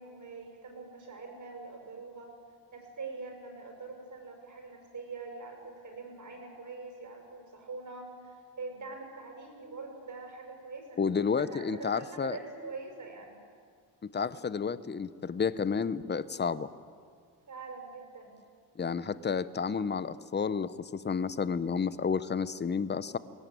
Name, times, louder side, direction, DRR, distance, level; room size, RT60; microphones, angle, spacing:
voice 1, 0.0-2.3 2.7-13.4 17.5-18.4, right 3 dB, 45° right, 2 dB, 6.3 m, -44 dB
voice 2, 11.0-12.4 14.1-16.7 18.8-23.2, left 6 dB, 25° left, 15 dB, 0.8 m, -31 dB
22.0 x 18.0 x 9.2 m, 2.1 s
cardioid pair, 100°, 43 cm